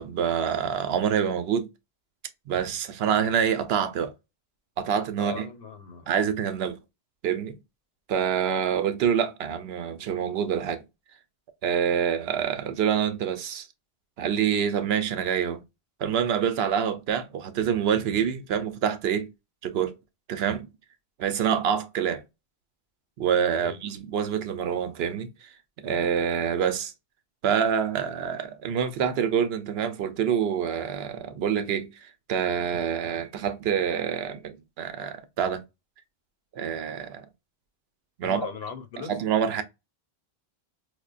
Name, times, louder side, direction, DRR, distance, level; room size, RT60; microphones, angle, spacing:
voice 1, 0.0-1.7 2.5-4.1 4.8-5.5 6.1-6.8 7.2-7.6 8.1-10.8 11.6-13.7 14.2-15.6 16.0-19.3 19.6-19.9 20.3-20.7 21.2-22.2 23.2-25.5 25.8-26.9 27.4-35.6 36.5-37.3 38.2-38.4 39.0-39.6, right 8 dB, 80° right, 0.8 m, -26 dB
voice 2, 5.2-6.1 23.6-23.8 38.2-39.2, left 5 dB, 80° left, 1.0 m, -37 dB
4.9 x 2.1 x 2.4 m
omnidirectional pair, 1.0 m